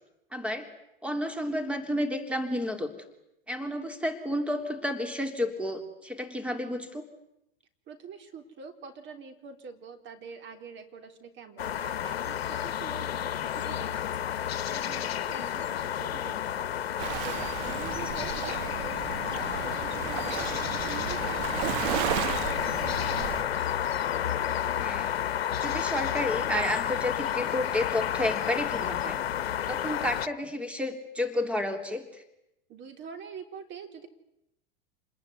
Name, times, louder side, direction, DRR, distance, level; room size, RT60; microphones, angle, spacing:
voice 1, 0.3-0.7 1.0-2.9 3.5-7.0 22.7-22.8 24.8-25.1 25.6-29.2 29.7-32.2, left 1 dB, 5° right, 7 dB, 3.3 m, -31 dB
voice 2, 7.9-16.8 17.1-23.4 32.7-34.1, right 5 dB, 40° right, 7 dB, 3.7 m, -45 dB
sound 1, 11.6-30.3, left 10 dB, 85° left, 1.0 m, -31 dB
Waves surf, 17.0-23.4, right 12 dB, 55° right, 1.3 m, -34 dB
28.5 x 21.0 x 9.6 m, 0.85 s
hypercardioid pair, 100°, 30 cm